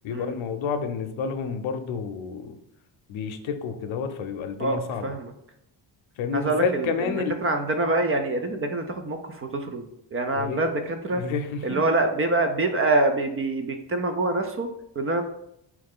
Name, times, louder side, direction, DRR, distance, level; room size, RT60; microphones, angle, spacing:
voice 1, 0.0-2.6 3.1-5.1 6.2-7.4 10.3-10.6 11.1-11.8, left 5 dB, 80° left, 8 dB, 0.7 m, -29 dB
voice 2, 6.3-11.2 11.6-14.7 15.0-15.2, right 2 dB, 30° right, 6 dB, 0.4 m, -25 dB
4.7 x 3.2 x 3.6 m, 0.77 s
cardioid pair, 130°, 46 cm